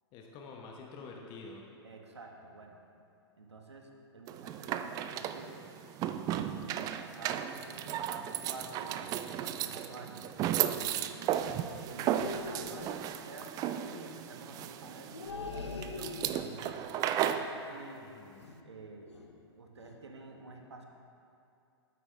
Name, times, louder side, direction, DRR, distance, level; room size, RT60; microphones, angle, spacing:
voice 1, 0.1-1.6 18.0-18.5, left 3 dB, 35° left, 0 dB, 1.1 m, -48 dB
voice 2, 1.8-2.8 3.4-5.6 6.3-10.3 11.0-11.5 11.8-13.5 13.8-16.9 17.3-18.0 18.6-19.1 19.6-20.9, right 3 dB, 80° right, 3 dB, 1.3 m, -49 dB
sound 1, 4.3-17.5, right 10 dB, 25° right, 0.4 m, -35 dB
sound 2, 12.2-13.1 15.1-16.7 18.4-18.7 19.1-19.4 19.8-20.0, left 3 dB, 85° left, 0.9 m, -42 dB
12.5 x 9.3 x 3.4 m, 2.7 s
figure-of-eight pair, 110°, 14 cm